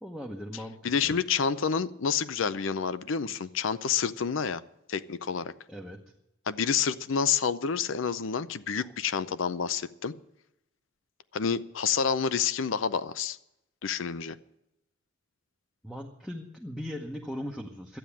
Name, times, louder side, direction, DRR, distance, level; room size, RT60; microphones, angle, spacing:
voice 1, 0.0-1.2 5.7-6.0 8.8-8.9 15.8-18.0, equal, 5° left, 0 dB, 0.9 m, -39 dB
voice 2, 0.8-4.6 4.9-5.5 6.5-10.1 11.3-13.4 13.8-14.4, left 6 dB, 80° left, 15 dB, 0.6 m, -28 dB
12.5 x 9.1 x 8.4 m, 0.86 s
head